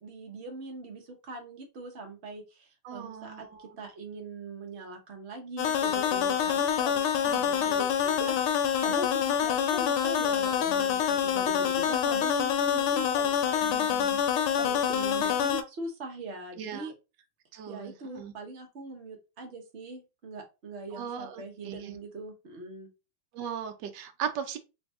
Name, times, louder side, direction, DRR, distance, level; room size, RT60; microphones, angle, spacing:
voice 1, 0.0-16.9 17.7-22.9, right 2 dB, 50° right, 0.8 m, -41 dB
voice 2, 2.8-3.8 7.2-7.8 13.6-14.2 15.2-15.3 16.6-16.9 17.5-18.3 20.9-22.0 23.3-24.6, right 8 dB, 75° right, 1.0 m, -39 dB
sound 1, 5.6-15.6, left 9 dB, 85° left, 1.5 m, -26 dB
3.3 x 2.7 x 3.5 m
omnidirectional pair, 2.3 m